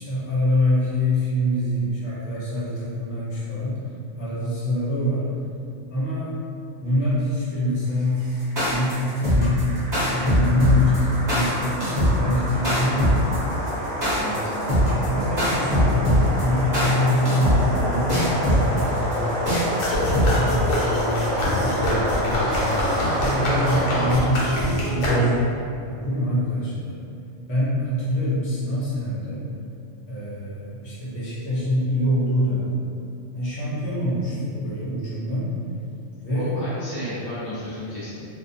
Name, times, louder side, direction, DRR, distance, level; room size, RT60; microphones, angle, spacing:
voice 1, 0.0-3.8 4.2-5.3 5.9-6.4 6.8-9.6 10.0-13.1 14.3-14.5 15.0-19.4 20.0-22.8 23.2-25.3 25.9-27.0 27.5-29.5 30.1-32.8 33.3-35.6 36.2-36.6, left 1 dB, 60° left, -9 dB, 0.9 m, -25 dB
sound 1, 8.0-24.1, equal, 60° right, 0.7 m, -28 dB
sound 2, 8.4-20.7, equal, 25° right, 0.7 m, -21 dB
voice 2, 14.2-14.5 36.3-38.3, left 1 dB, 25° left, -11 dB, 0.4 m, -33 dB
sound 3, 19.8-25.6, left 1 dB, 85° left, 1.0 m, -25 dB
2.4 x 2.2 x 2.6 m, 2.5 s
omnidirectional pair, 1.4 m